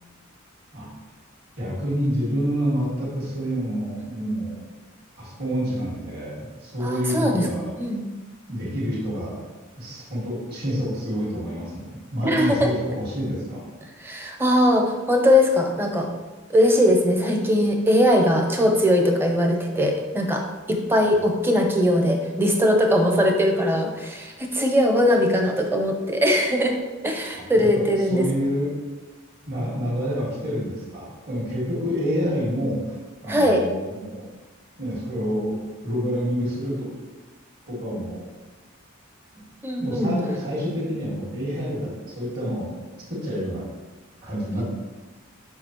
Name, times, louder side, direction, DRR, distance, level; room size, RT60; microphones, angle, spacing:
voice 1, 1.6-4.6 5.1-7.7 8.5-9.4 9.8-13.7 21.0-21.2 27.4-28.7 29.5-34.3 34.8-35.6 35.8-36.9 37.7-38.2 39.3-39.4 39.8-42.8 43.1-43.7 44.2-44.6, equal, 50° right, -10 dB, 2.0 m, -28 dB
voice 2, 6.8-7.5 7.8-8.1 12.2-12.7 14.0-16.1 16.5-26.8 27.0-28.3 33.3-33.6 39.6-40.1 44.6-44.7, left 1 dB, 10° right, 3 dB, 0.7 m, -20 dB
6.4 x 5.7 x 3.1 m, 1.2 s
head